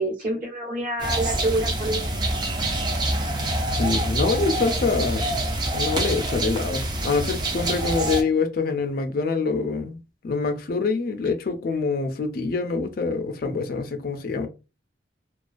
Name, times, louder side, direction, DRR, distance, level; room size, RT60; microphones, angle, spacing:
voice 1, 0.0-2.1, right 2 dB, 45° right, 1.0 m, -27 dB
sound 1, 1.0-8.2, right 1 dB, 25° right, 0.3 m, -26 dB
voice 2, 3.7-5.4 5.7-10.0 10.2-14.5, left 4 dB, 50° left, 0.4 m, -25 dB
2.3 x 2.2 x 2.4 m
head